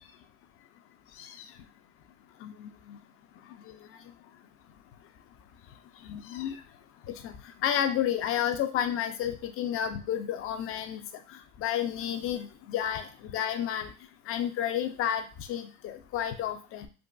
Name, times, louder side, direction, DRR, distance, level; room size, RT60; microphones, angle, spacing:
voice 1, 2.4-3.0 3.7-3.8 6.1-6.6 7.2-7.3 7.6-11.0 11.6-13.9 14.3-15.2 15.5-16.9, left 10 dB, 35° left, 8 dB, 0.4 m, -31 dB
4.0 x 2.4 x 2.2 m, 0.34 s
supercardioid pair, 105°, 44 cm